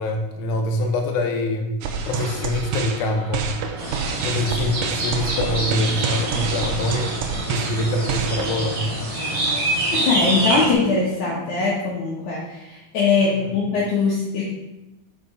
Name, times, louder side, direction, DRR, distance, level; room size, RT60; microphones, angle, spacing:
voice 1, 0.0-1.7 2.1-3.5 4.2-7.1 7.5-8.8 13.2-13.6, left 2 dB, 85° left, 3 dB, 2.9 m, -25 dB
sound 1, 1.8-8.5, right 6 dB, 75° right, 2.2 m, -28 dB
sound 2, 3.8-10.7, right 2 dB, 35° right, 1.3 m, -26 dB
voice 2, 9.9-14.4, left 4 dB, 65° left, -5 dB, 2.5 m, -21 dB
6.7 x 6.1 x 5.5 m, 0.96 s
omnidirectional pair, 4.1 m